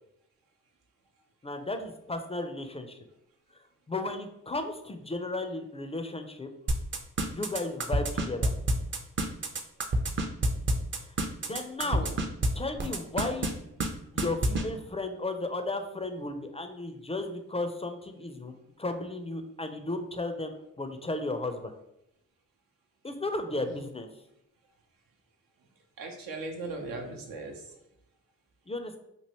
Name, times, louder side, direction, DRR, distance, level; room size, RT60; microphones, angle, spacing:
voice 1, 1.4-3.0 3.9-6.5 7.3-8.5 11.4-12.1 12.6-13.5 13.8-21.7 23.0-24.1 28.7-29.0, left 2 dB, 20° left, 6 dB, 0.4 m, -34 dB
sound 1, 6.7-12.5 12.8-13.5 13.8-13.9 14.2-14.6, right 2 dB, 35° right, 0.5 m, -27 dB
voice 2, 11.8-12.2 23.6-23.8 26.0-27.8, right 2 dB, 80° right, 2 dB, 0.7 m, -39 dB
3.0 x 2.6 x 2.9 m, 0.83 s
supercardioid pair, 45°, 34 cm